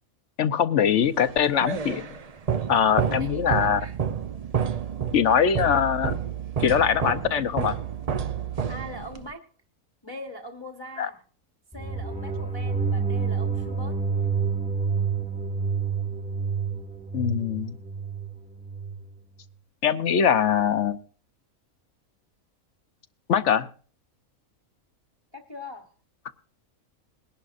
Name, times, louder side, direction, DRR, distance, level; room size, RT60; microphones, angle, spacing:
voice 1, 0.4-2.1 2.7-3.8 5.1-6.2 6.6-7.8 11.0-11.1 17.1-17.8 19.8-21.0 23.3-23.7, left 8 dB, 60° left, 11 dB, 0.9 m, -22 dB
sound 1, 1.2-9.3, right 7 dB, 45° right, 0.5 m, -30 dB
voice 2, 2.7-4.0 8.7-9.5 10.0-11.2 11.7-14.0 25.3-25.9, left 1 dB, 20° left, 5 dB, 1.1 m, -41 dB
sound 2, 11.7-19.0, right 5 dB, 5° right, 1.3 m, -28 dB
21.5 x 11.0 x 2.5 m, 0.40 s
omnidirectional pair, 1.5 m